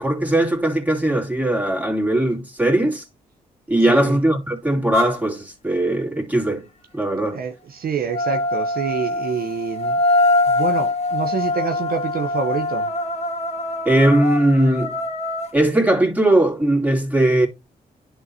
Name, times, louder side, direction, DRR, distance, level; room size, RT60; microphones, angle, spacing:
voice 1, 0.0-3.0 3.7-6.6 6.9-7.4 13.8-15.0 15.5-17.5, right 1 dB, 10° right, 2.8 m, -19 dB
voice 2, 3.8-4.2 7.3-10.0 10.5-12.9, right 6 dB, 60° right, 0.8 m, -27 dB
sound 1, 4.9-5.2 8.1-15.5, left 2 dB, 40° left, 2.0 m, -23 dB
11.0 x 3.7 x 2.7 m
supercardioid pair, 50°, 17 cm